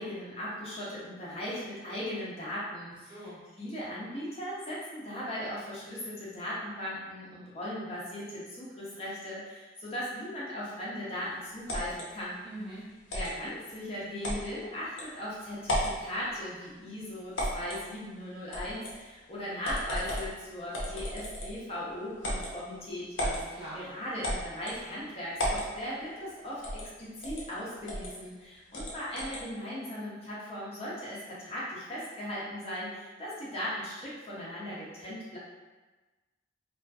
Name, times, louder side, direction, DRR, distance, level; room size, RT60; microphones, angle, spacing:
voice 1, 0.0-3.3 3.6-12.4 13.1-23.1 23.7-35.4, left 1 dB, 30° left, -8 dB, 0.6 m, -38 dB
voice 2, 3.1-3.4 12.4-12.8 23.2-23.9, right 1 dB, 25° right, -9 dB, 0.8 m, -42 dB
sound 1, 11.7-12.1 13.1-13.3 14.2-14.4 15.0-15.1 15.6-16.0 17.3-17.8 18.5-19.0 19.6-20.3 20.7-21.6 22.2-22.5 23.2-23.4 24.2-24.8 25.4-25.7 26.6-26.9 27.2-27.4 27.9-28.1 28.7-29.4, equal, 80° left, 0.6 m, -33 dB
2.4 x 2.4 x 2.3 m, 1.2 s
head